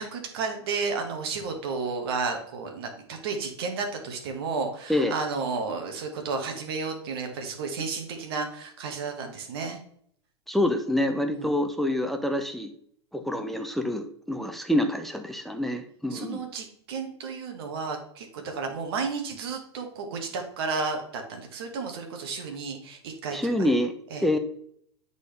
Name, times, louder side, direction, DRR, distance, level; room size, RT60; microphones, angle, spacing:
voice 1, 0.0-9.8 16.1-23.4 24.1-24.2, right 4 dB, 60° right, 3 dB, 1.4 m, -32 dB
voice 2, 10.5-12.7 13.1-16.4 23.3-23.9 24.2-24.4, left 1 dB, ahead, 6 dB, 0.6 m, -26 dB
8.2 x 4.1 x 3.3 m, 0.64 s
hypercardioid pair, 100°, 14 cm